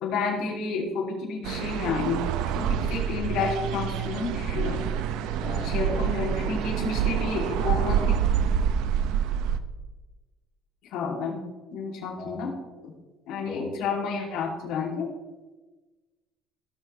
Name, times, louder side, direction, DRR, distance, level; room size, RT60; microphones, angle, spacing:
voice 1, 0.0-2.2 2.5-4.8 5.6-8.2 10.9-11.4 11.7-12.6 13.3-15.1, left 4 dB, 70° left, -2 dB, 2.7 m, -30 dB
sound 1, 1.4-9.6, right 8 dB, 75° right, 0.6 m, -27 dB
voice 2, 5.4-6.0 12.2-12.4 13.4-13.8, left 3 dB, 35° left, -4 dB, 2.4 m, -37 dB
16.0 x 6.3 x 3.3 m, 1.2 s
cardioid pair, 155°, 0 cm